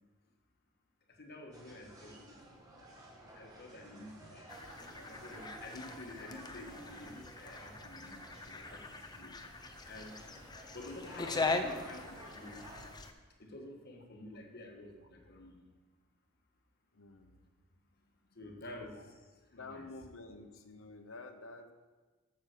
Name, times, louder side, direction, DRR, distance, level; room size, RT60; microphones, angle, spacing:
voice 1, 1.1-2.3 3.3-9.3 9.8-10.2 10.7-12.7 13.4-15.6 18.3-19.2 19.5-19.9, left 1 dB, 50° left, 2 dB, 1.6 m, -50 dB
sound 1, 1.5-12.8, right 1 dB, 20° right, 1.9 m, -53 dB
sound 2, 4.5-13.1, left 3 dB, 20° left, 0.7 m, -41 dB
voice 2, 16.9-17.4 18.0-18.1 19.0-19.1 19.5-21.7, left 3 dB, 70° left, 7 dB, 1.0 m, -50 dB
9.0 x 7.0 x 6.7 m, 1.3 s
head